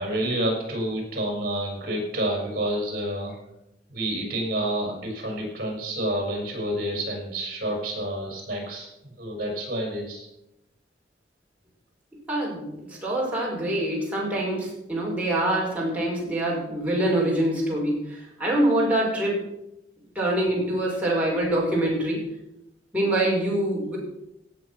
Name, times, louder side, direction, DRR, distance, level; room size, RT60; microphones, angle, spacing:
voice 1, 0.0-3.3 3.9-8.9 9.2-10.3, right 1 dB, 55° right, 0 dB, 5.9 m, -29 dB
voice 2, 12.3-19.4 20.2-22.3 22.9-24.0, right 1 dB, 10° right, -5 dB, 5.2 m, -25 dB
17.5 x 7.6 x 6.0 m, 0.86 s
head